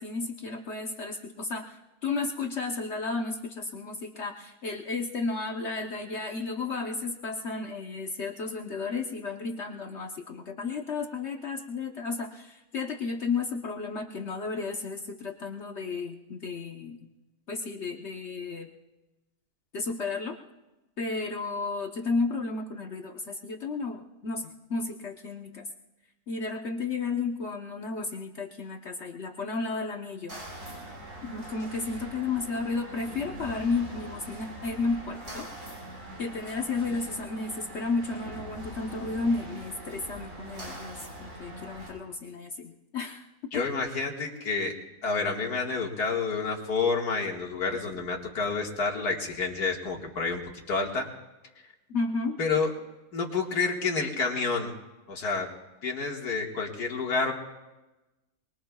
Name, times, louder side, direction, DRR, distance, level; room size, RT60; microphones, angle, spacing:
voice 1, 0.0-17.1 17.5-18.7 19.7-20.4 21.0-25.6 26.3-30.4 31.2-35.5 36.2-43.3 43.5-43.7 51.9-52.4, left 4 dB, 50° left, 2 dB, 1.1 m, -33 dB
sound 1, 30.3-41.9, right 1 dB, 70° right, 5.4 m, -42 dB
voice 2, 43.5-44.7 45.0-50.4 50.7-51.1 52.4-52.7 53.1-54.7 55.1-55.5 55.8-57.3, left 4 dB, 85° left, 0 dB, 2.3 m, -29 dB
23.5 x 22.5 x 2.3 m, 1.0 s
omnidirectional pair, 1.6 m